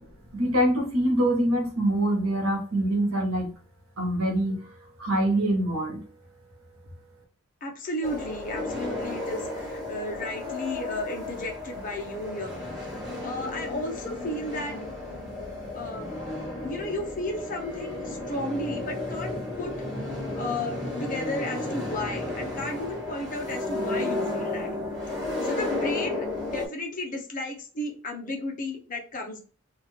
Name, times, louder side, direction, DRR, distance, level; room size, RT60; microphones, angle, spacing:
voice 1, 0.0-3.5 4.0-6.0, right 1 dB, 80° right, 2 dB, 1.1 m, -25 dB
voice 2, 7.6-12.6 13.2-14.8 15.7-19.7 20.3-24.7 25.4-29.4, left 1 dB, 40° left, 2 dB, 0.7 m, -34 dB
sound 1, 8.0-26.7, left 2 dB, ahead, 1.4 m, -33 dB
2.8 x 2.4 x 3.1 m, 0.39 s
head